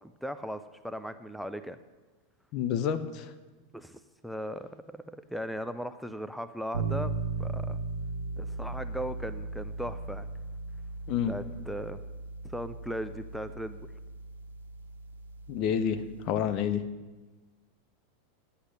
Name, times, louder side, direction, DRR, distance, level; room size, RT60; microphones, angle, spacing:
voice 1, 0.0-1.8 3.7-7.1 7.4-7.8 8.4-10.3 11.3-12.0 12.4-13.8, equal, ahead, 11 dB, 0.5 m, -38 dB
voice 2, 2.5-3.3 11.1-11.3 15.5-16.8, left 8 dB, 50° left, 11 dB, 0.8 m, -29 dB
sound 1, 6.7-16.6, right 3 dB, 80° right, 0.9 m, -37 dB
10.0 x 8.1 x 6.4 m, 1.2 s
hypercardioid pair, 95°, 0 cm